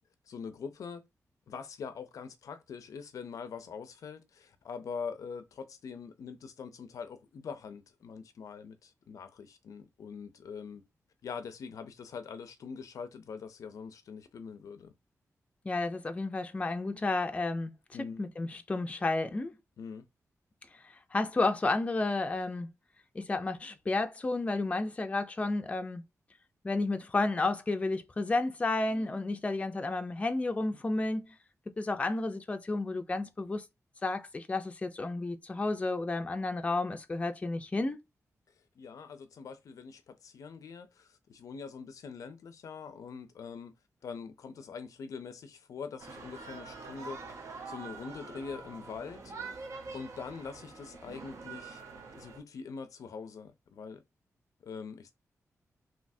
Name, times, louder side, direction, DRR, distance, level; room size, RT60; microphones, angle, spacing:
voice 1, 0.2-1.1 1.5-10.8 11.2-14.9 17.9-18.2 19.8-20.1 28.9-29.2 38.8-43.7 44.0-47.2 47.6-49.3 49.9-51.8 52.1-54.0 54.6-55.1, left 5 dB, 80° left, 0.5 m, -43 dB
voice 2, 15.6-17.7 18.2-19.6 21.1-22.7 23.1-26.0 26.6-31.3 31.8-33.6 34.0-38.0, left 2 dB, 25° left, 0.4 m, -31 dB
sound 1, 46.0-52.4, right 4 dB, 65° right, 0.9 m, -45 dB
3.1 x 2.8 x 2.6 m
wide cardioid pair, 120°, 6 cm